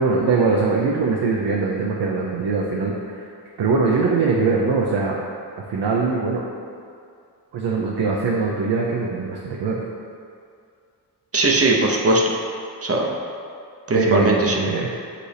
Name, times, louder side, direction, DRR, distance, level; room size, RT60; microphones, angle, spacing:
voice 1, 0.0-3.3 3.6-5.2 5.6-6.4 7.5-9.8 13.9-14.9, right 4 dB, 75° right, -3 dB, 0.7 m, -22 dB
voice 2, 11.3-12.3 12.8-13.2 13.9-14.6, right 2 dB, 35° right, 0 dB, 0.7 m, -19 dB
6.2 x 5.0 x 3.3 m, 2.4 s
wide cardioid pair, 95°, 42 cm